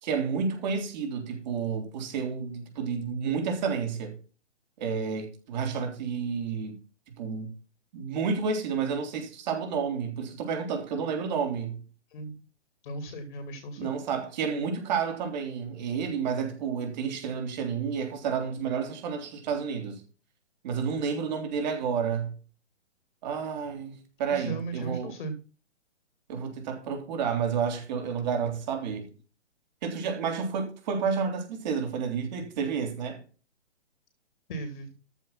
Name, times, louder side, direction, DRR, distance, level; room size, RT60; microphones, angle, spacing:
voice 1, 0.0-4.2 4.8-6.8 7.2-7.5 7.9-11.8 13.8-20.0 20.6-22.3 23.2-25.2 26.3-29.1 29.8-33.2, right 6 dB, 40° right, 3.7 m, -30 dB
voice 2, 12.8-14.0 24.3-25.3 34.5-34.9, right 2 dB, 50° left, 2.8 m, -36 dB
14.0 x 5.7 x 5.8 m
figure-of-eight pair, 130°, 35 cm